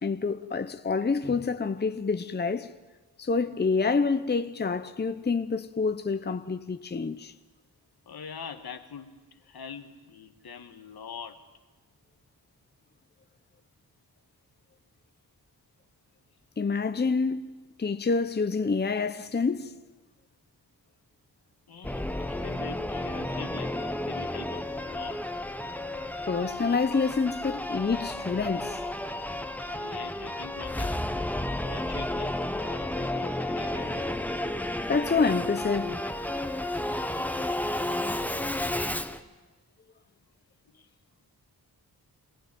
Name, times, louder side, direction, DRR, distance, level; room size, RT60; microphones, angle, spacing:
voice 1, 0.0-2.7 3.2-7.3 16.6-19.7 26.3-28.8 34.9-36.1, left 4 dB, 25° left, 0.8 m, -27 dB
voice 2, 8.0-11.5 21.7-25.3 29.7-31.0 31.6-34.1 40.7-40.9, left 6 dB, 70° left, 1.7 m, -43 dB
Singing / Musical instrument, 21.8-39.2, left 1 dB, 5° left, 1.1 m, -32 dB
26.0 x 18.0 x 9.2 m
cardioid pair, 75°, 39 cm